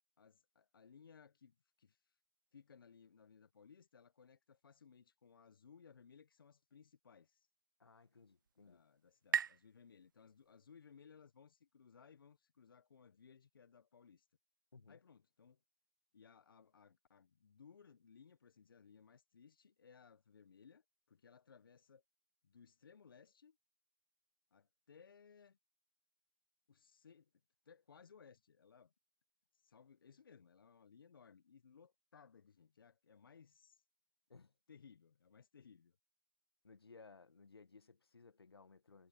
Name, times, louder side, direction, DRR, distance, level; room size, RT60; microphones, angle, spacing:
voice 1, 0.2-2.2 2.5-7.5 8.6-14.3 14.9-15.6 16.1-22.0 22.4-23.6 24.5-25.6 26.7-27.3 27.6-28.9 29.5-33.8 34.7-36.0, left 6 dB, 65° left, 1.1 m, -63 dB
voice 2, 7.8-8.8 14.7-15.0 34.3-34.5 36.6-39.1, left 4 dB, 85° left, 1.4 m, -61 dB
sound 1, 7.9-11.2, right 8 dB, 55° right, 0.4 m, -44 dB
hypercardioid pair, 150°, 13 cm